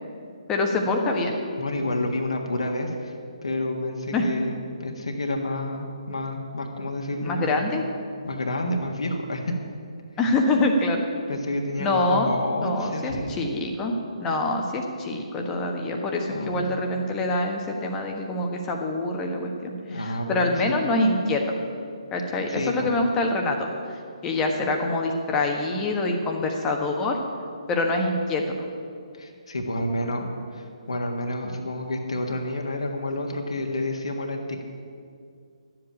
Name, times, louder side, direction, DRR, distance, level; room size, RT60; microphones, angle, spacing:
voice 1, 0.5-1.3 4.1-4.3 7.2-7.8 10.2-11.0 11.8-12.3 12.6-21.4 22.1-27.2 27.7-28.7, left 2 dB, 15° left, 1 dB, 1.3 m, -25 dB
voice 2, 1.6-3.1 3.4-4.5 4.8-7.5 8.2-9.5 11.3-13.3 16.3-16.6 19.9-20.6 22.5-22.9 29.1-34.6, left 1 dB, 65° left, 2 dB, 1.6 m, -29 dB
11.5 x 7.7 x 8.6 m, 2.3 s
figure-of-eight pair, 140°, 3 cm